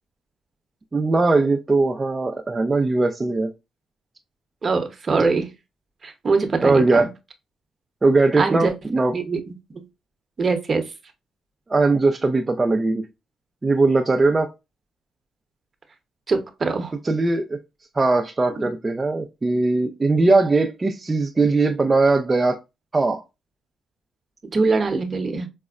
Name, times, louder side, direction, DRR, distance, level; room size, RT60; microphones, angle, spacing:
voice 1, 0.9-3.5 6.6-7.1 8.0-9.1 11.7-13.1 13.6-14.5 17.0-17.6 17.9-22.6 22.9-23.2, right 3 dB, 25° right, 0.4 m, -20 dB
voice 2, 4.6-5.5 6.0-7.1 8.4-8.7 9.1-9.4 9.7-9.8 10.4-10.8 16.3-16.9 18.6-18.7 24.5-25.5, right 4 dB, 40° right, 0.9 m, -22 dB
5.0 x 2.0 x 2.4 m
cardioid pair, 90°, 0 cm